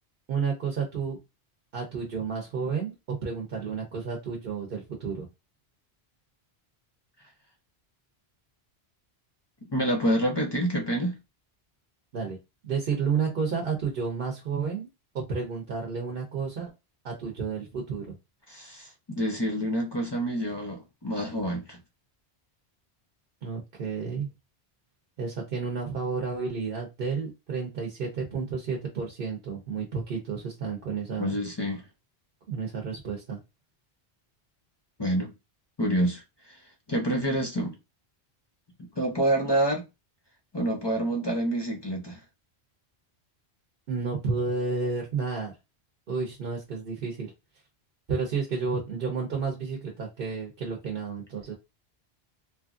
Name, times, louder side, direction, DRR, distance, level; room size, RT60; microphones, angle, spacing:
voice 1, 0.3-1.2 1.7-5.3 12.1-12.4 12.6-14.9 15.1-16.7 17.0-18.1 23.4-24.3 25.2-31.4 32.5-33.4 43.9-45.5 46.1-47.3 48.1-51.5, right 5 dB, 60° right, 0.9 m, -31 dB
voice 2, 9.7-11.2 18.5-21.8 31.2-31.8 35.0-35.3 35.8-36.2 36.9-37.7 39.0-39.8 40.5-42.2, right 1 dB, 30° left, 0.5 m, -27 dB
3.0 x 2.5 x 2.4 m
omnidirectional pair, 1.1 m